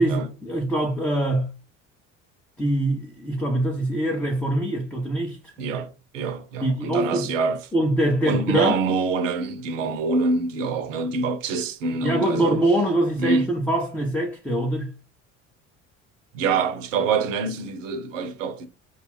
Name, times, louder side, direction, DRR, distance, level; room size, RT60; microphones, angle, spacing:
voice 1, 0.0-1.5 2.6-5.5 6.6-7.3 7.7-8.8 12.0-14.9, right 1 dB, 5° left, 0.5 m, -23 dB
voice 2, 5.6-7.7 8.2-12.6 13.2-13.5 16.3-18.7, right 4 dB, 75° right, 0.6 m, -25 dB
2.4 x 2.2 x 3.4 m
figure-of-eight pair, 60°, 38 cm